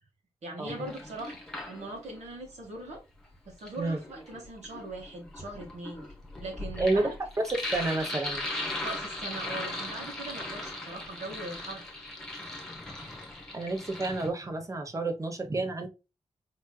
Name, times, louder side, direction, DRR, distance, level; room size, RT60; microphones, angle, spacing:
voice 1, 0.4-1.4 1.7-3.0 3.4-6.1 6.4-7.1 8.8-11.8, right 2 dB, 85° right, 1.8 m, -40 dB
Sink (filling or washing), 0.7-2.2 3.3-14.3, left 2 dB, 5° left, 1.2 m, -38 dB
voice 2, 7.4-8.5 13.5-15.9, right 2 dB, 30° right, 0.8 m, -30 dB
4.6 x 3.1 x 2.2 m
wide cardioid pair, 155°, 11 cm